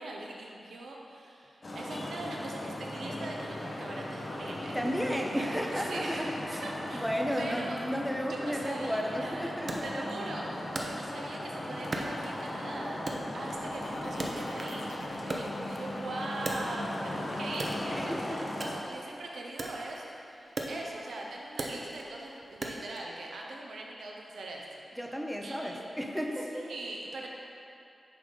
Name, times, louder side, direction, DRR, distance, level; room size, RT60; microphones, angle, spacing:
voice 1, 0.0-4.8 5.4-6.3 6.6-7.1 7.4-9.6 9.8-24.8 25.4-25.9 26.5-27.3, right 2 dB, 90° right, -1 dB, 0.8 m, -41 dB
Traffic noise roadway noise, 1.6-18.8, left 1 dB, 45° left, 1.0 m, -38 dB
voice 2, 4.7-6.6 6.9-10.0 10.4-10.5 10.8-10.9 13.9-14.5 17.9-18.5 25.0-26.7, equal, ahead, 0 dB, 0.7 m, -34 dB
Wood, 9.7-11.5 11.9-12.7 13.1-14.9 15.2-17.1 17.5-23.1, right 2 dB, 50° right, 0.6 m, -39 dB
sound 1, 13.5-19.1 19.5-20.0, left 2 dB, 85° left, 0.7 m, -48 dB
6.5 x 3.8 x 5.3 m, 2.7 s
wide cardioid pair, 80°, 0 cm